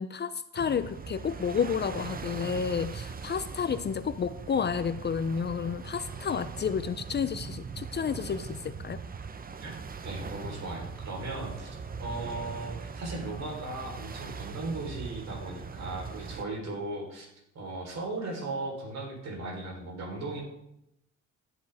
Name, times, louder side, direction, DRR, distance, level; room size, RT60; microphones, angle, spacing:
voice 1, 0.0-9.0, left 6 dB, 35° left, 13 dB, 0.5 m, -31 dB
sound 1, 0.6-16.5, right 5 dB, 30° right, 0.7 m, -40 dB
voice 2, 10.0-11.7 12.0-17.3 17.5-20.4, right 2 dB, 60° right, 0 dB, 4.0 m, -37 dB
16.0 x 8.1 x 3.5 m, 0.83 s
cardioid pair, 90°, 30 cm